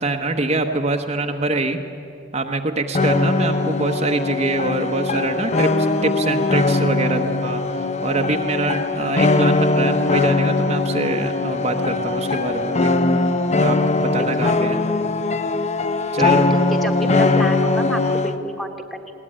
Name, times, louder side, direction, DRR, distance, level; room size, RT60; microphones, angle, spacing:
voice 1, 0.0-1.8 2.3-12.9 13.6-14.8 16.1-16.5, right 2 dB, 35° right, 4 dB, 1.1 m, -24 dB
sound 1, 2.9-18.4, left 3 dB, 35° left, 0.8 m, -20 dB
voice 2, 14.2-15.0 16.2-19.1, equal, ahead, 4 dB, 1.4 m, -30 dB
21.0 x 18.5 x 9.9 m, 2.6 s
head